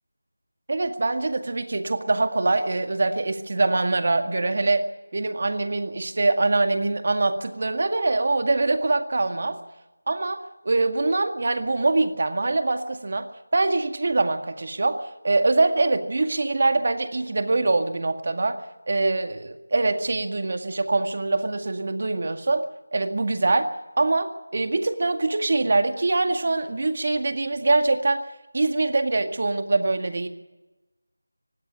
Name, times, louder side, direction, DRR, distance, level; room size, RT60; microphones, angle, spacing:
voice 1, 0.7-4.9 5.1-9.6 10.1-13.3 13.5-18.6 18.9-23.7 24.0-28.3 28.5-30.3, right 2 dB, 45° right, 7 dB, 2.1 m, -23 dB
19.5 x 16.5 x 9.4 m, 1.1 s
figure-of-eight pair, 170°, 0 cm